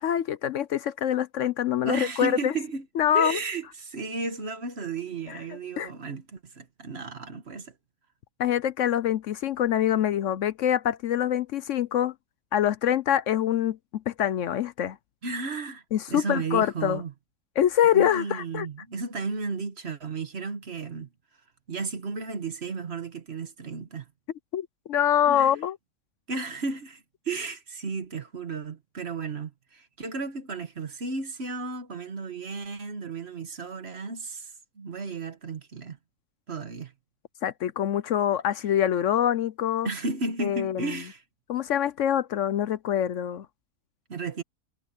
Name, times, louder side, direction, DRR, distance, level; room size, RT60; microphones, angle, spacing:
voice 1, 0.0-2.5 3.0-3.4 5.3-5.4 5.8-5.9 8.4-12.1 12.5-15.0 15.9-17.0 17.6-18.7 24.5-25.8 37.4-39.9 40.4-41.0 41.5-43.5, left 10 dB, 70° left, 0.9 m, -25 dB
voice 2, 1.8-2.9 3.1-7.7 15.2-17.1 17.9-21.1 21.7-24.1 25.3-25.5 26.3-36.0 36.5-36.9 39.8-41.2 44.1-44.4, right 4 dB, 50° right, 1.6 m, -34 dB
omnidirectional pair, 1.5 m